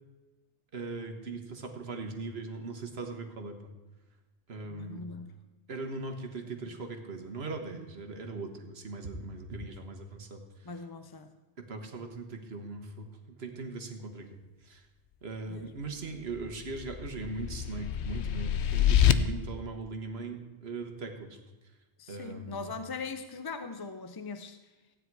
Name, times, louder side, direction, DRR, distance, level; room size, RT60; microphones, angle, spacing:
voice 1, 0.7-3.6 4.5-5.0 5.7-10.4 11.6-14.3 14.6-14.8 15.2-21.4 22.1-22.7, right 3 dB, 60° right, 5 dB, 1.6 m, -39 dB
voice 2, 4.7-5.4 10.6-11.3 15.5-15.7 22.0-24.6, left 4 dB, 30° left, 8 dB, 0.4 m, -41 dB
sound 1, 16.3-19.1, left 11 dB, 70° left, 0.9 m, -26 dB
15.5 x 9.7 x 4.7 m, 1.1 s
omnidirectional pair, 1.2 m